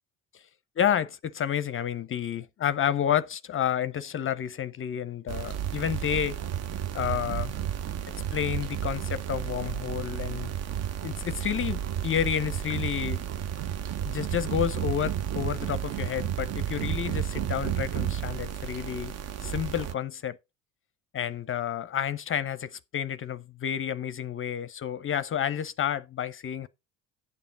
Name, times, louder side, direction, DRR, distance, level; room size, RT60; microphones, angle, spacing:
voice 1, 0.8-6.4 6.9-7.5 8.1-10.5 11.0-13.2 14.0-19.1 19.4-20.4 21.1-26.7, left 9 dB, 35° left, 0.6 m, -30 dB
sound 1, 5.3-19.9, right 10 dB, 40° right, 0.7 m, -32 dB
11.0 x 7.0 x 3.8 m
hypercardioid pair, 60°, 39 cm